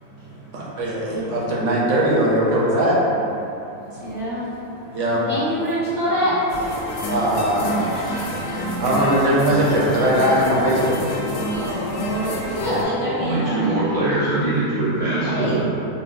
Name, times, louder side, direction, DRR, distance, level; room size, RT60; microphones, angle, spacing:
voice 1, 0.5-3.0 4.9-5.4 7.1-7.9 8.8-11.0 12.9-13.1, right 1 dB, 60° right, -5 dB, 0.9 m, -20 dB
voice 2, 4.0-4.5 5.1-6.5 11.5-13.7 15.2-15.6, equal, 15° left, -14 dB, 1.2 m, -25 dB
sound 1, 6.5-12.8, left 1 dB, 85° left, 1.1 m, -28 dB
voice 3, 13.2-15.6, right 2 dB, 60° left, -12 dB, 0.3 m, -22 dB
5.7 x 2.2 x 2.4 m, 2.8 s
omnidirectional pair, 1.6 m